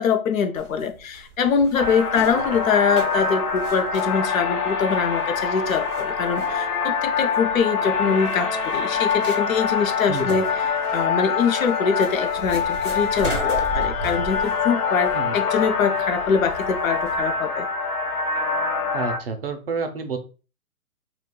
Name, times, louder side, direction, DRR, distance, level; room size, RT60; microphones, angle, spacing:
voice 1, 0.0-10.5 10.9-17.7, left 6 dB, 65° left, 0.6 m, -23 dB
sound 1, 0.6-17.3, right 1 dB, 20° left, 0.4 m, -37 dB
sound 2, 1.7-19.2, left 5 dB, 90° left, 0.8 m, -25 dB
voice 2, 10.1-10.4 15.1-15.3 18.9-20.2, right 4 dB, 45° right, 0.4 m, -29 dB
2.3 x 2.2 x 3.5 m
hypercardioid pair, 140°, 44 cm